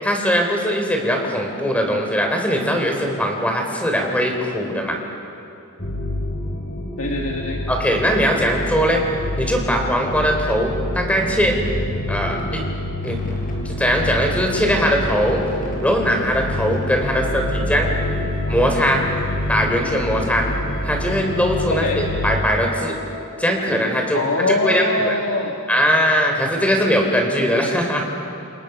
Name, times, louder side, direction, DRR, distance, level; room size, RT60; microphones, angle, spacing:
voice 1, 0.0-5.0 7.7-9.0 9.4-11.6 12.1-12.6 13.0-13.2 13.6-15.4 15.8-17.9 18.5-19.0 19.5-20.5 20.8-23.0 23.4-24.2 24.5-25.1 25.7-28.0, equal, 5° left, 2 dB, 3.9 m, -20 dB
sound 1, 5.8-22.4, left 1 dB, 40° left, 5.8 m, -27 dB
voice 2, 7.0-7.6 17.1-17.4 21.7-22.1 24.1-25.5, left 2 dB, 70° left, 0 dB, 2.0 m, -23 dB
Wind instrument woodwind instrument, 16.9-23.3, left 3 dB, 85° right, 5.6 m, -37 dB
29.0 x 28.0 x 6.1 m, 2.7 s
head